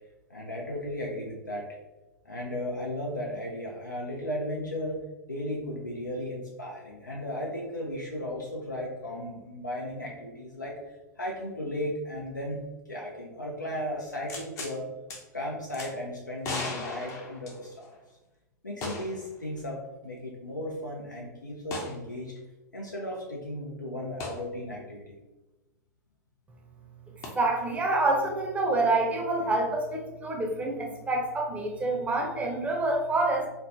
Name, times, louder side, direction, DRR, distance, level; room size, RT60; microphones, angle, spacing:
voice 1, 0.3-1.8 2.2-5.0 5.3-12.6 12.9-14.9 15.3-17.9 18.6-22.3 22.7-25.1, left 1 dB, 90° left, -2 dB, 0.4 m, -35 dB
sound 1, 14.3-14.7 15.1-15.2 15.7-15.9 16.4-17.9 18.8-19.3 19.6-19.7 21.7-22.0 24.2-24.4 27.2-27.3, left 2 dB, 30° left, 0.6 m, -36 dB
voice 2, 27.3-33.5, right 2 dB, 15° right, 0 dB, 0.6 m, -27 dB
3.1 x 2.0 x 2.6 m, 1.1 s
figure-of-eight pair, 95°, 10 cm